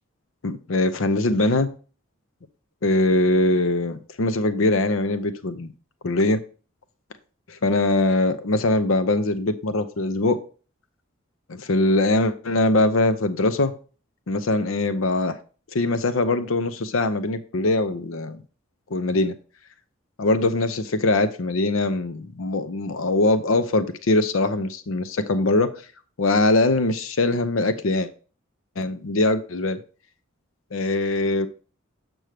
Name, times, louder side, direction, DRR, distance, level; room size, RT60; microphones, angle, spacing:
voice 1, 0.4-1.7 2.8-5.7 6.0-6.4 7.5-10.4 11.5-13.8 14.3-15.4 15.7-18.4 18.9-19.3 20.2-25.7 26.2-28.1 28.8-29.8 30.7-31.5, left 2 dB, 85° left, 11 dB, 0.6 m, -22 dB
7.7 x 6.1 x 3.4 m, 0.38 s
head